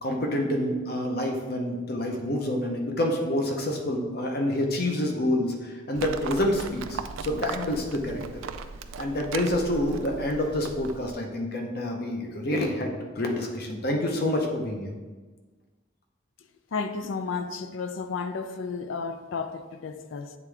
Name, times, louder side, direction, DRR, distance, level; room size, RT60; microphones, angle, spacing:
voice 1, 0.0-8.2 9.0-14.9, left 1 dB, 50° left, 0.8 m, -28 dB
Livestock farm animals working animals, 5.9-11.1, right 5 dB, 90° right, 0.3 m, -37 dB
voice 2, 16.7-20.4, left 4 dB, 80° left, 0.4 m, -32 dB
8.0 x 3.6 x 3.4 m
head